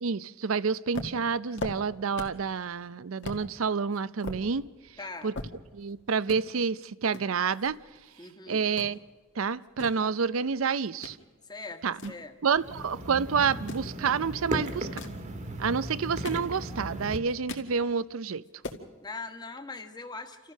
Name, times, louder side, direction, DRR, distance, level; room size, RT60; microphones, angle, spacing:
voice 1, 0.0-4.7 5.2-5.3 5.7-7.8 8.5-9.0 9.4-11.2 11.8-12.0 12.4-14.9 15.6-18.4, right 5 dB, 75° right, 18 dB, 0.6 m, -28 dB
sound 1, 0.9-2.5 2.8-2.9 3.2-3.4 3.9-5.9 6.2-6.4 7.1-8.3 8.6-8.9 9.5-11.2 11.6-12.9 13.5-13.9 14.7-15.2 15.9-16.9 17.2-17.7 18.1-18.2 18.4-18.8, left 2 dB, 60° left, 2.0 m, -40 dB
voice 2, 5.0-5.3 8.2-8.7 11.4-12.3 19.0-20.5, left 3 dB, 20° left, 6 dB, 1.6 m, -41 dB
sound 2, 12.5-17.2, right 1 dB, 35° right, 1.6 m, -36 dB
29.5 x 14.0 x 6.4 m, 1.3 s
head